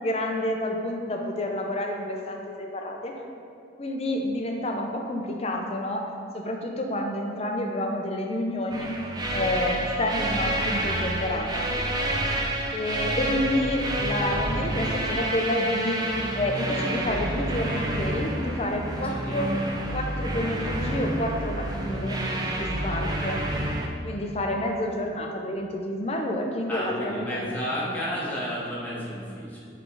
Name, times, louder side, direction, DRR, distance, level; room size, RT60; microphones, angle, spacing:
voice 1, 0.0-3.1 3.8-6.0 6.3-8.9 9.3-11.7 12.7-16.0 16.4-19.5 19.9-22.2 22.5-23.4 24.0-27.5, left 1 dB, 30° left, 1 dB, 0.5 m, -29 dB
sound 1, 8.7-23.9, right 1 dB, 20° right, 0.4 m, -29 dB
voice 2, 19.0-19.4 26.7-29.7, equal, 10° left, -7 dB, 1.0 m, -32 dB
6.3 x 3.4 x 4.6 m, 2.4 s
head